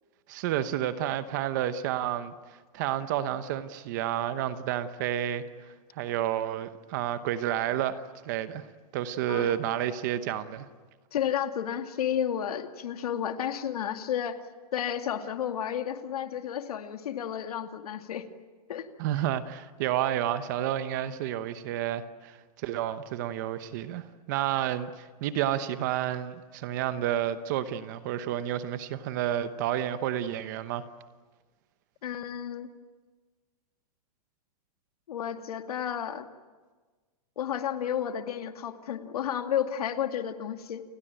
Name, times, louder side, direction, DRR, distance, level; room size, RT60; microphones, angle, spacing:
voice 1, 0.3-2.3 2.7-8.6 8.9-10.7 19.0-30.8, right 11 dB, 30° right, 1.0 m, -30 dB
voice 2, 11.1-14.4 14.7-18.3 18.7-18.9 32.0-32.7 35.1-36.3 37.4-40.8, left 9 dB, 65° left, 2.3 m, -32 dB
30.0 x 21.5 x 9.1 m
hypercardioid pair, 175°, 20 cm